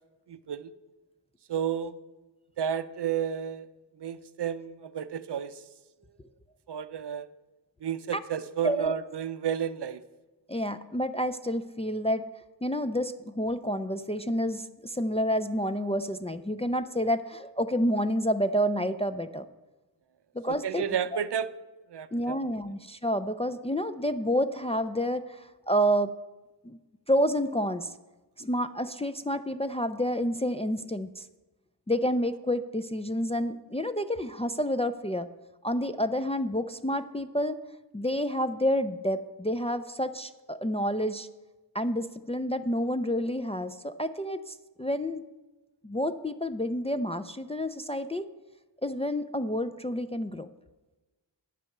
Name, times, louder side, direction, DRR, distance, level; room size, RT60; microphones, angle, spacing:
voice 1, 0.3-0.7 1.5-1.9 2.6-3.7 4.0-5.6 6.7-7.3 7.8-10.0 20.5-21.5 21.9-22.3, right 8 dB, 65° right, 14 dB, 0.6 m, -31 dB
voice 2, 10.5-12.3 12.6-19.5 20.3-20.8 21.1-21.2 22.1-26.1 26.6-26.8 27.1-27.9 28.4-31.3 31.9-35.3 35.6-37.6 37.9-41.3 41.7-45.2 45.8-48.3 48.8-50.5, equal, 15° left, 8 dB, 0.3 m, -29 dB
9.4 x 7.5 x 6.5 m, 1.1 s
wide cardioid pair, 80°, 45 cm